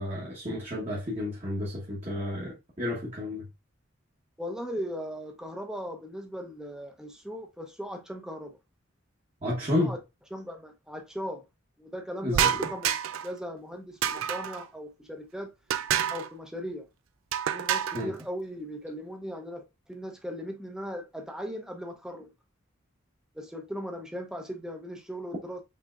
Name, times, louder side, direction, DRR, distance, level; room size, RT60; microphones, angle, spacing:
voice 1, 0.0-3.4 9.4-9.9 12.2-12.7 17.9-18.1, left 1 dB, 35° right, 1.2 m, -31 dB
voice 2, 4.4-8.6 9.8-10.0 10.3-11.4 11.8-15.5 16.1-16.9 17.5-22.3 23.3-25.6, equal, 5° right, 0.8 m, -38 dB
sound 1, 12.3-13.3 14.0-14.6 15.7-16.3 17.3-18.0, right 9 dB, 85° right, 0.4 m, -28 dB
5.4 x 3.4 x 2.4 m
head